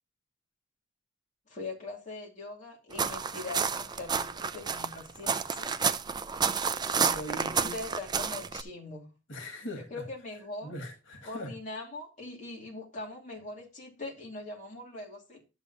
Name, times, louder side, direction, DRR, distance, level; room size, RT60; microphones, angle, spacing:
voice 1, 1.5-5.8 7.3-9.1 9.8-10.8 11.2-15.4, left 2 dB, 40° left, 2.6 m, -42 dB
sound 1, 2.9-8.6, right 6 dB, 20° right, 0.4 m, -30 dB
voice 2, 6.8-7.8 9.3-9.9 10.6-11.5, equal, 85° left, 1.9 m, -41 dB
11.5 x 7.2 x 2.7 m
head